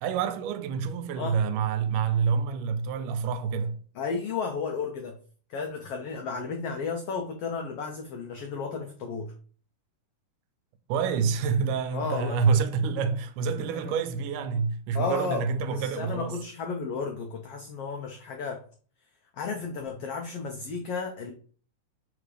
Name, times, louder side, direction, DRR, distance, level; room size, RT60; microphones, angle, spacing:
voice 1, 0.0-3.8 10.9-16.4, right 6 dB, 85° right, 2.1 m, -27 dB
voice 2, 3.9-5.2 5.5-9.3 11.9-12.4 13.8-13.9 14.9-15.4 15.7-18.6 19.3-21.3, left 5 dB, 80° left, 1.3 m, -33 dB
5.9 x 4.8 x 3.3 m
omnidirectional pair, 3.6 m